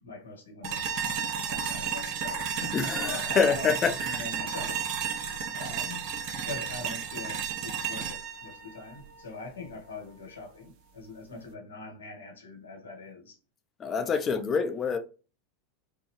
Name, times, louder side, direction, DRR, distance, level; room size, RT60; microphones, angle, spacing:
voice 1, 0.0-4.8 5.5-6.1 6.3-13.3 13.9-14.4, left 3 dB, 90° left, 1.6 m, -43 dB
sound 1, 0.6-9.7, right 7 dB, 55° right, 0.7 m, -33 dB
voice 2, 2.7-4.2 13.8-15.0, left 5 dB, 30° left, 0.8 m, -26 dB
5.4 x 2.2 x 3.1 m
hypercardioid pair, 90°, 0 cm